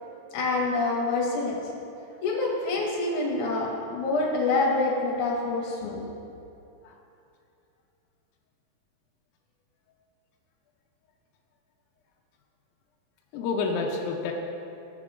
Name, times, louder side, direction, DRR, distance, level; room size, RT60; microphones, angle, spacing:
voice 1, 0.3-1.6 2.2-6.0, left 3 dB, 65° left, -3 dB, 2.7 m, -26 dB
voice 2, 13.3-14.3, left 4 dB, 85° left, 1 dB, 2.4 m, -29 dB
13.5 x 8.1 x 2.5 m, 2.7 s
omnidirectional pair, 4.1 m